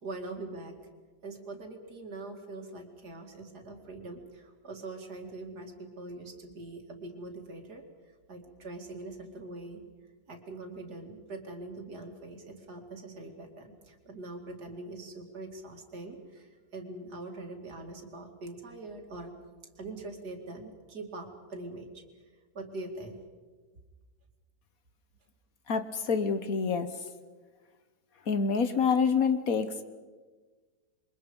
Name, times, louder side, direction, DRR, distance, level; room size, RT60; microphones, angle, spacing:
voice 1, 0.0-0.8 1.2-7.8 8.3-9.8 10.3-19.3 19.8-22.0 22.5-23.2, right 2 dB, 65° right, 3 dB, 3.0 m, -43 dB
voice 2, 25.7-26.9 28.3-29.8, left 5 dB, 60° left, 10 dB, 1.4 m, -27 dB
28.0 x 23.5 x 5.4 m, 1.4 s
omnidirectional pair, 1.8 m